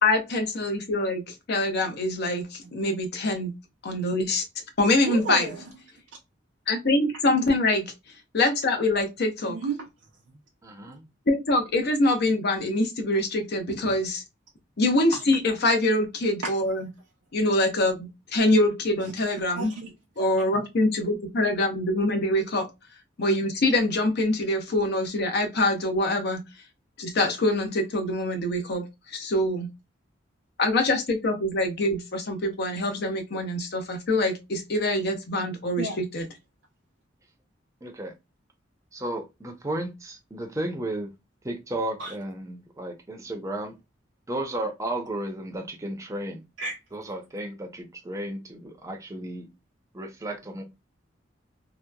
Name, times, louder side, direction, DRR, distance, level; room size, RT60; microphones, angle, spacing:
voice 1, 0.0-3.5 3.8-4.4 4.8-5.5 6.7-7.9 8.3-9.6 11.3-14.2 14.8-16.9 17.3-19.7 20.2-22.7 23.2-26.4 27.0-28.9 29.1-29.7 30.6-36.3, left 2 dB, 60° left, 0.6 m, -24 dB
voice 2, 5.0-5.7 9.5-9.9 13.7-13.9 15.1-15.2 16.4-16.5 19.0-19.1 19.6-20.3 35.8-36.0 42.0-42.1 46.6-46.8, right 3 dB, 75° right, 0.5 m, -33 dB
voice 3, 10.6-11.0 37.8-38.1 38.9-41.1 41.4-43.7 44.3-46.4 46.9-49.5 49.9-50.6, right 1 dB, 15° right, 0.6 m, -33 dB
2.8 x 2.1 x 2.2 m
head